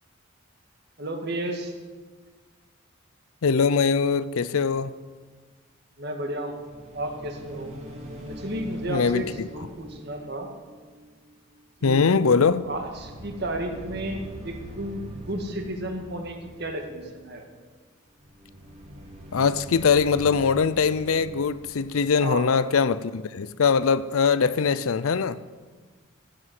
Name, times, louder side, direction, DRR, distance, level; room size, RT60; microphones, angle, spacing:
voice 1, 1.0-1.7 6.0-7.7 8.3-10.5 11.8-12.3 12.6-17.5 22.2-22.5, right 1 dB, 50° right, 1.9 m, -33 dB
voice 2, 3.4-4.9 8.9-9.5 11.8-12.6 19.3-25.4, left 5 dB, 80° left, 0.5 m, -22 dB
sound 1, 6.4-11.7 12.0-17.2 18.2-23.0, equal, 30° right, 2.6 m, -43 dB
15.0 x 7.9 x 8.1 m
head